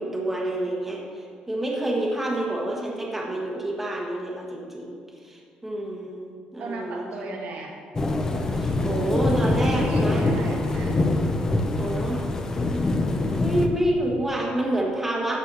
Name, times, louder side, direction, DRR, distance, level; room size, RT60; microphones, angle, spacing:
voice 1, 0.0-4.9 5.2-7.2 8.5-10.2 11.8-12.2 13.4-15.4, right 1 dB, 10° right, -2 dB, 1.6 m, -28 dB
voice 2, 6.6-7.8 9.6-11.1, right 3 dB, 75° right, -1 dB, 1.7 m, -36 dB
sound 1, 8.0-13.7, left 2 dB, 20° left, 0.8 m, -24 dB
13.0 x 4.8 x 5.5 m, 2.1 s
cardioid pair, 130°, 3 cm